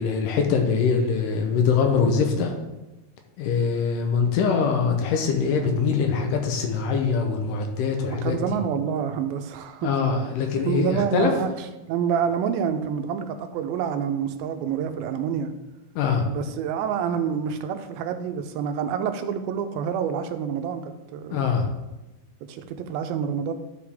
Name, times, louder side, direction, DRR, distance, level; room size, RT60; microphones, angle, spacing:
voice 1, 0.0-2.5 3.4-8.4 9.8-11.3 16.0-16.3 21.3-21.7, left 5 dB, 75° left, 4 dB, 2.3 m, -23 dB
voice 2, 8.1-10.0 10.7-15.5 16.2-21.7 22.5-23.5, right 7 dB, 90° right, 8 dB, 2.5 m, -27 dB
11.5 x 5.1 x 3.4 m, 1.0 s
omnidirectional pair, 4.2 m